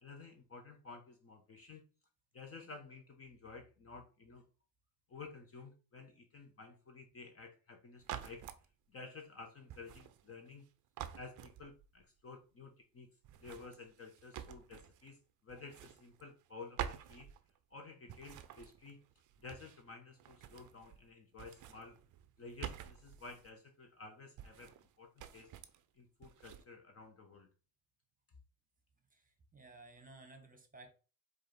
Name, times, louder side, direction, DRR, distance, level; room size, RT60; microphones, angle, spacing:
voice 1, 0.0-1.8 2.3-4.4 5.1-8.4 8.9-10.6 11.2-13.1 13.4-15.2 15.4-17.3 17.7-19.0 19.4-22.0 22.4-25.5 26.0-27.5, left 4 dB, 30° left, 4 dB, 0.8 m, -52 dB
sound 1, 8.0-8.6 9.7-10.7 11.0-12.0 13.2-15.1 15.5-16.5 16.8-17.7 18.1-19.9 20.2-21.1 21.3-23.5 24.4-24.9 25.2-25.8 26.2-26.6, right 10 dB, 40° right, 0.6 m, -48 dB
voice 2, 29.1-30.9, right 2 dB, 15° right, 6 dB, 1.2 m, -56 dB
4.6 x 2.6 x 4.4 m, 0.34 s
hypercardioid pair, 75°, 50 cm